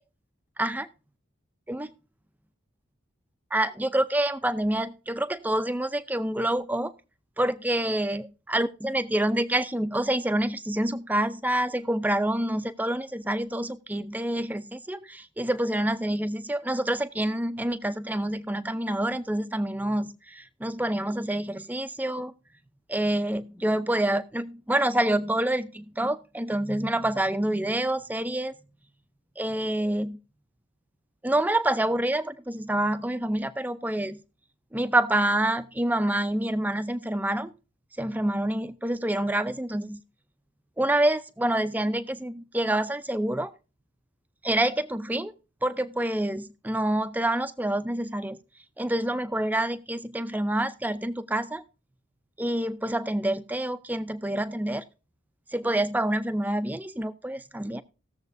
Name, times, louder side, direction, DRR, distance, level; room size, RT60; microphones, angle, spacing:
voice 1, 0.6-0.9 1.7-1.9 3.5-6.9 7.4-22.3 22.9-28.5 29.4-30.2 31.2-34.2 34.7-37.5 38.0-40.0 40.8-43.5 44.4-45.3 45.6-48.4 48.8-51.6 52.4-54.8 55.5-57.8, right 1 dB, 10° right, 0.5 m, -27 dB
18.5 x 7.3 x 2.6 m
head